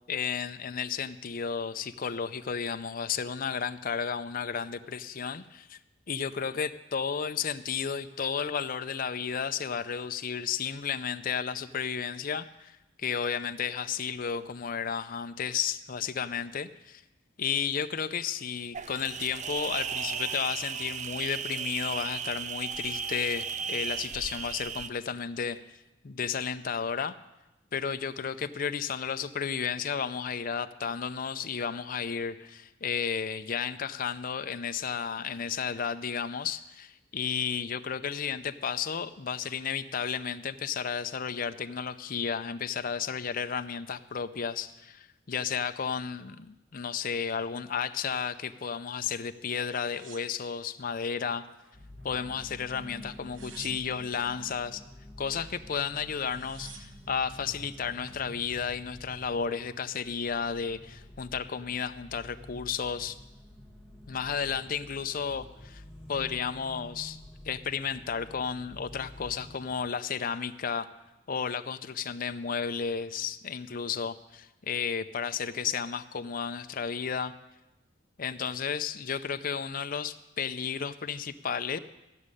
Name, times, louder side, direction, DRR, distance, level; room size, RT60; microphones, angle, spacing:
voice 1, 0.1-5.8 6.1-17.0 17.4-25.6 26.0-27.1 27.7-51.5 52.0-54.8 55.2-63.2 64.1-65.8 66.1-67.2 67.5-70.9 71.3-77.3 78.2-81.8, left 6 dB, 45° left, 9 dB, 0.5 m, -33 dB
sound 1, 18.7-24.9, right 7 dB, 35° right, 0.4 m, -35 dB
sound 2, 49.8-51.2 51.6-52.4 53.1-54.2 55.8-55.9 56.1-57.1 57.8-58.3, right 5 dB, 70° right, 1.2 m, -51 dB
sound 3, 51.7-69.7, left 1 dB, 5° right, 1.6 m, -49 dB
14.0 x 6.4 x 9.8 m, 0.97 s
head